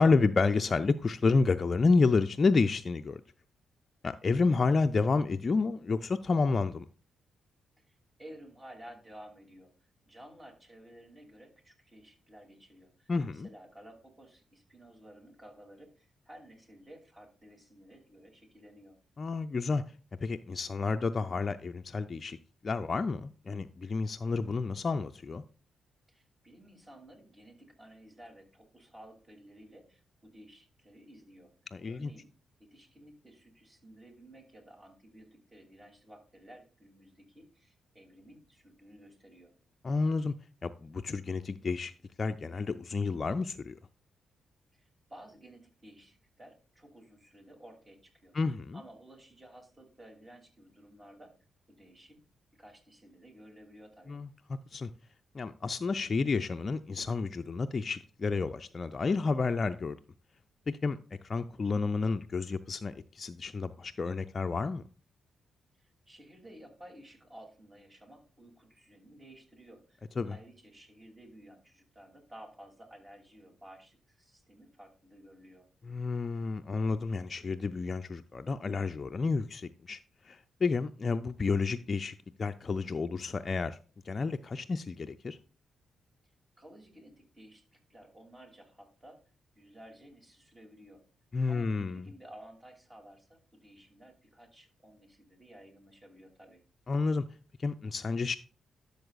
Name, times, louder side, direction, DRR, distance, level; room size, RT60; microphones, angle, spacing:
voice 1, 0.0-3.2 4.0-6.8 13.1-13.5 19.2-19.8 20.2-22.4 22.6-25.4 31.7-32.1 39.8-40.3 40.6-41.9 42.2-43.8 48.3-48.8 54.1-54.3 54.7-54.9 55.3-60.0 60.7-61.0 61.2-64.8 70.2-70.4 75.9-80.0 80.3-83.8 84.1-85.4 91.3-92.1 96.9-97.2 97.6-98.4, left 4 dB, 45° left, 0.4 m, -30 dB
voice 2, 7.8-19.0 26.1-31.5 31.9-32.3 32.6-39.5 44.7-48.3 48.7-51.3 51.7-52.2 52.6-54.2 65.8-75.7 86.6-89.2 89.5-91.0 91.5-96.6, right 1 dB, 25° right, 2.9 m, -54 dB
12.0 x 6.7 x 2.4 m
hypercardioid pair, 40°, 0 cm